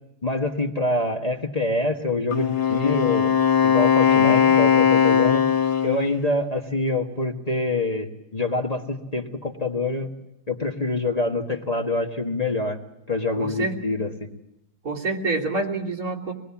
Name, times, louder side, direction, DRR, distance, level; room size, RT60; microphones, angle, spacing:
voice 1, 0.2-3.3 3.6-5.4 5.8-10.1 10.5-12.8 13.1-14.3, left 2 dB, 25° left, 2 dB, 1.7 m, -25 dB
Wind instrument woodwind instrument, 2.3-6.1, left 8 dB, 85° left, 1.9 m, -19 dB
voice 2, 4.1-4.6 13.4-13.8 14.8-16.3, right 2 dB, 70° right, 0 dB, 3.4 m, -27 dB
26.0 x 20.0 x 7.2 m, 0.86 s
omnidirectional pair, 1.7 m